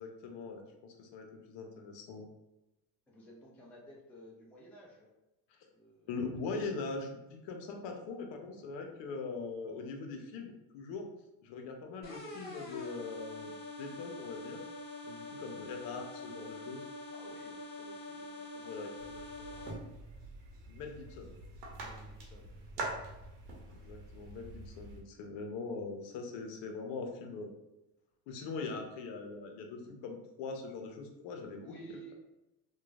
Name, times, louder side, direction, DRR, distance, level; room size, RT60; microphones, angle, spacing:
voice 1, 0.0-2.3 6.1-11.1 11.4-13.5 13.8-14.6 15.0-16.8 18.6-19.3 20.7-21.3 23.7-27.5 28.3-31.7, left 4 dB, 65° left, 3 dB, 0.7 m, -42 dB
voice 2, 3.1-5.1 5.7-6.1 15.2-15.4 17.1-19.9 21.8-22.5 22.8-23.3 31.6-32.2, right 1 dB, 5° left, -3 dB, 0.3 m, -55 dB
sound 1, 12.0-19.7, left 2 dB, 20° left, 1.1 m, -45 dB
sound 2, 19.0-25.0, right 2 dB, 80° right, 1.0 m, -45 dB
3.0 x 2.3 x 2.4 m, 0.97 s
supercardioid pair, 90°, 48 cm